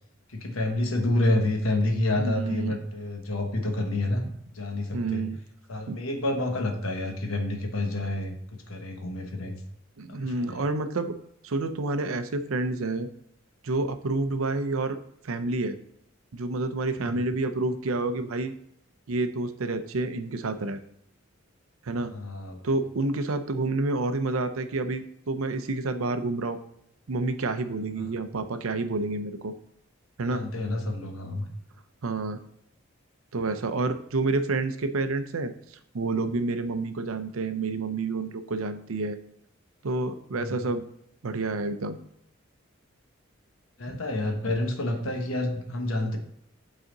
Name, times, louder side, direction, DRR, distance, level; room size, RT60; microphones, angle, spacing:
voice 1, 0.3-4.2 4.5-5.3 5.7-8.4 8.7-9.6 10.1-10.6 17.0-17.2 22.1-22.6 28.0-28.1 30.3-31.5 40.3-40.6 43.8-46.2, left 1 dB, 85° left, 4 dB, 1.2 m, -28 dB
voice 2, 2.2-2.7 4.9-5.4 5.9-6.0 10.0-11.2 11.4-13.1 13.6-15.0 15.2-15.8 16.3-18.5 19.1-20.8 21.8-22.1 22.6-26.6 27.1-29.5 30.2-30.4 32.0-32.4 33.3-35.5 35.9-39.2 39.8-40.8 41.2-42.0 43.9-44.0, right 3 dB, 85° right, 10 dB, 0.6 m, -29 dB
7.9 x 4.2 x 3.8 m, 0.74 s
head